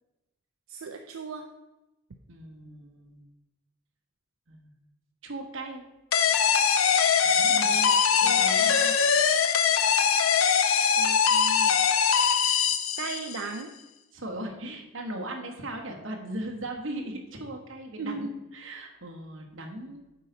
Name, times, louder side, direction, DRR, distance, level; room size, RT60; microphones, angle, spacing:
voice 1, 0.7-1.4 7.5-8.9 11.0-11.8 13.0-13.7 18.0-18.3, right 3 dB, 85° right, 4 dB, 0.5 m, -37 dB
voice 2, 2.3-3.2 4.5-4.7 5.2-5.8 7.2-7.8 8.2-8.8 14.1-20.0, right 1 dB, 65° right, 1 dB, 1.3 m, -38 dB
sound 1, 6.1-13.5, left 7 dB, 75° left, 0.6 m, -22 dB
8.9 x 4.0 x 5.2 m, 1.0 s
head